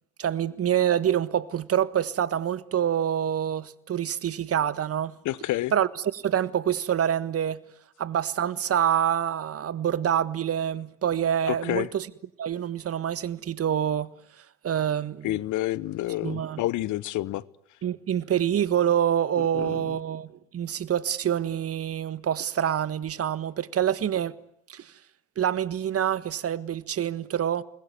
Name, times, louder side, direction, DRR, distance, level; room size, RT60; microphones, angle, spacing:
voice 1, 0.2-5.2 5.7-7.6 8.0-12.1 12.4-14.1 14.6-15.4 16.2-16.6 17.8-20.3 20.5-24.3 24.7-24.9 25.4-27.6, right 9 dB, 45° right, 1.6 m, -26 dB
voice 2, 5.2-5.7 11.5-11.9 15.2-17.4 19.4-20.0, left 16 dB, 60° left, 1.1 m, -29 dB
28.0 x 21.5 x 9.6 m
hypercardioid pair, 65°, 34 cm